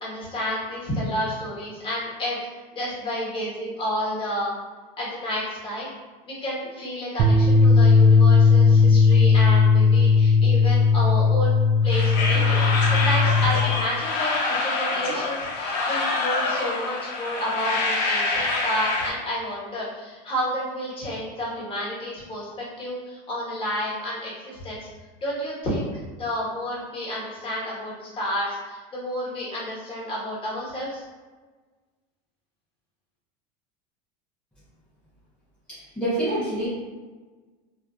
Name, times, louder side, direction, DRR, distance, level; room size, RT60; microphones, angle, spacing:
voice 1, 0.0-2.4 2.7-4.5 5.0-5.9 6.2-12.6 12.9-24.9 25.2-31.0, equal, 25° left, -7 dB, 1.1 m, -30 dB
sound 1, 7.2-13.5, left 4 dB, 45° right, 0.4 m, -17 dB
sound 2, 11.9-19.1, left 3 dB, 70° left, 0.5 m, -26 dB
voice 2, 35.7-36.7, right 1 dB, 5° left, -12 dB, 0.6 m, -27 dB
2.5 x 2.3 x 2.3 m, 1.3 s
supercardioid pair, 135°, 21 cm